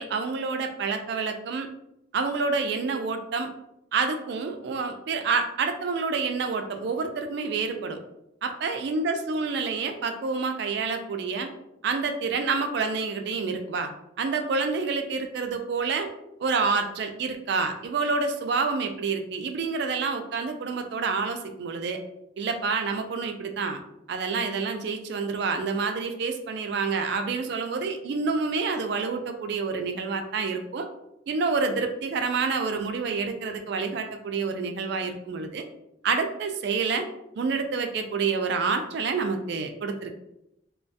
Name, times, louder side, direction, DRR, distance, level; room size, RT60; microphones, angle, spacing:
voice 1, 0.0-1.7 2.1-3.5 3.9-8.0 8.4-11.5 11.8-13.9 14.2-16.1 16.4-22.0 22.4-23.8 24.1-30.9 31.3-35.6 36.0-37.1 37.4-40.1, right 4 dB, 60° right, 6 dB, 0.3 m, -28 dB
2.3 x 2.2 x 2.6 m, 0.83 s
head